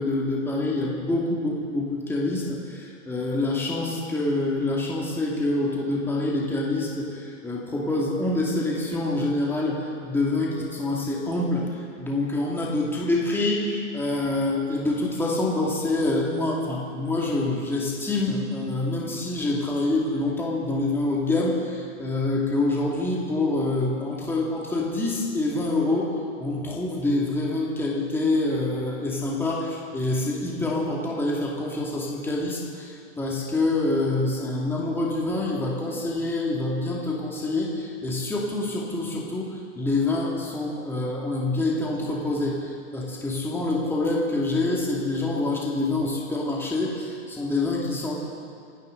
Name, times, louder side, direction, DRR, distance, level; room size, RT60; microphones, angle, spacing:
voice 1, 0.0-48.1, left 2 dB, 5° left, -3 dB, 2.3 m, -26 dB
27.5 x 10.5 x 3.9 m, 2.3 s
hypercardioid pair, 125°, 38 cm